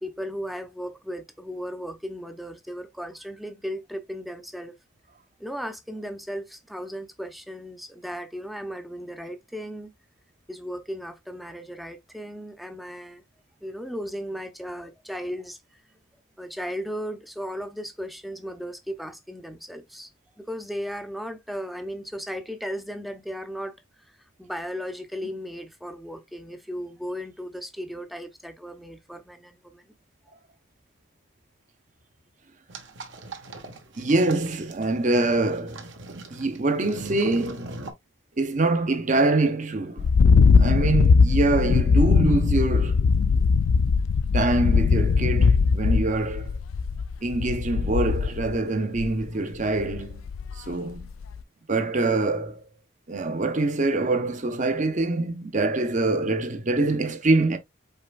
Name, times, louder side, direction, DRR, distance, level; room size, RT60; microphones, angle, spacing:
voice 1, 0.0-4.7 5.4-9.9 10.5-13.2 13.6-15.6 16.4-20.1 20.4-23.8 24.1-29.9, equal, ahead, 0.6 m, -36 dB
sound 1, 32.7-37.9, right 2 dB, 60° right, 1.1 m, -41 dB
voice 2, 34.0-35.9 36.3-37.8 38.4-40.1 40.6-43.1 44.3-46.6 47.2-50.3 50.6-51.1 51.7-52.6 53.1-57.6, right 2 dB, 40° right, 0.7 m, -24 dB
sound 2, 40.0-48.6 49.0-49.2 49.8-50.7 51.0-51.4, left 5 dB, 80° left, 0.4 m, -20 dB
5.5 x 4.4 x 2.2 m
head